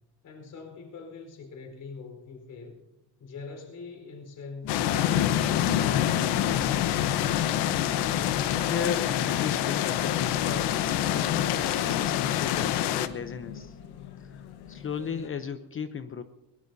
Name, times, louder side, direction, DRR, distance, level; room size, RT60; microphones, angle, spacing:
voice 1, 0.2-2.8 3.2-6.1 6.4-7.4, left 4 dB, 50° left, 3 dB, 4.6 m, -43 dB
sound 1, 4.6-15.3, left 8 dB, 70° left, 1.5 m, -41 dB
sound 2, 4.7-13.1, left 11 dB, 85° left, 1.1 m, -26 dB
voice 2, 8.6-13.8 14.2-16.2, left 7 dB, 30° left, 9 dB, 0.8 m, -35 dB
22.0 x 19.5 x 2.8 m, 0.99 s
cardioid pair, 120°, 39 cm